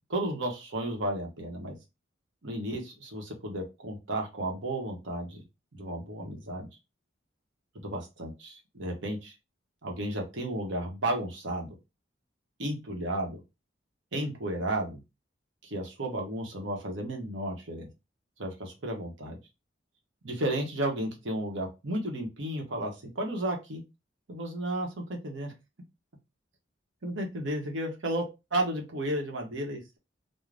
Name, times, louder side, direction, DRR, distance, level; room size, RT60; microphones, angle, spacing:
voice 1, 0.1-1.8 2.4-5.4 5.7-6.7 7.7-9.3 9.8-11.7 12.6-13.4 14.1-15.0 15.6-17.9 18.4-19.4 20.2-23.8 24.3-25.5 27.0-28.2 28.5-30.0, right 1 dB, 75° right, 2 dB, 0.9 m, -33 dB
2.5 x 2.1 x 3.2 m, 0.25 s
head